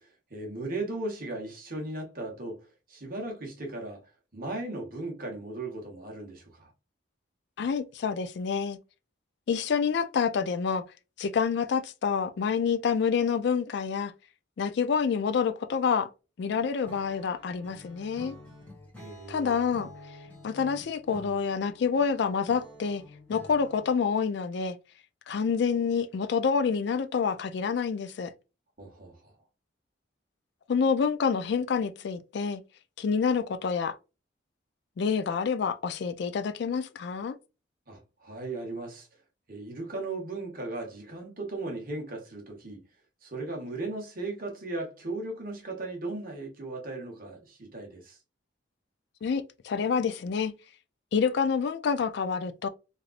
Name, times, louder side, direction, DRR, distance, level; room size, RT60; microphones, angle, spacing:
voice 1, 0.0-2.6 2.9-4.0 4.3-6.7 19.0-19.7 28.8-29.3 37.9-39.1 39.5-42.8 43.2-48.2, right 2 dB, 50° right, 1.2 m, -37 dB
voice 2, 7.6-8.8 9.5-10.8 11.2-14.1 14.6-16.1 16.4-18.4 19.3-19.9 20.4-23.0 23.3-24.8 25.3-28.3 30.7-32.6 33.0-33.9 35.0-37.3 49.2-50.5 51.1-52.7, left 6 dB, 60° left, 0.3 m, -27 dB
Acoustic guitar / Strum, 16.8-24.0, left 1 dB, 10° left, 1.4 m, -49 dB
3.3 x 2.5 x 2.4 m
head